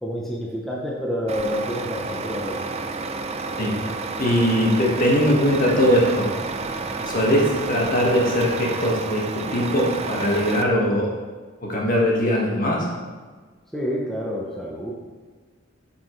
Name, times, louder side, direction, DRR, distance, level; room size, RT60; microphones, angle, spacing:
voice 1, 0.0-2.6 6.8-7.1 13.7-14.9, equal, ahead, -4 dB, 0.8 m, -28 dB
Truck, 1.3-10.6, right 4 dB, 30° right, 0.4 m, -30 dB
voice 2, 4.2-6.3 7.0-11.1 11.6-12.9, equal, 45° left, -3 dB, 1.7 m, -20 dB
8.8 x 6.0 x 3.2 m, 1.4 s
head